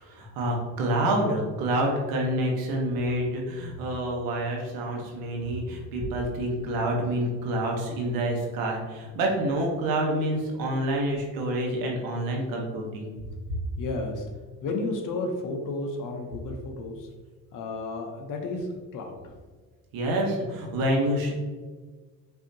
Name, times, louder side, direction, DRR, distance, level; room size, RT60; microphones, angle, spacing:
voice 1, 0.0-13.1 19.9-21.3, right 1 dB, 85° right, 0 dB, 1.1 m, -27 dB
voice 2, 13.8-14.3 14.6-17.1 17.5-19.3, left 2 dB, 65° left, 3 dB, 0.8 m, -32 dB
5.6 x 2.7 x 2.8 m, 1.4 s
cardioid pair, 110°, 35 cm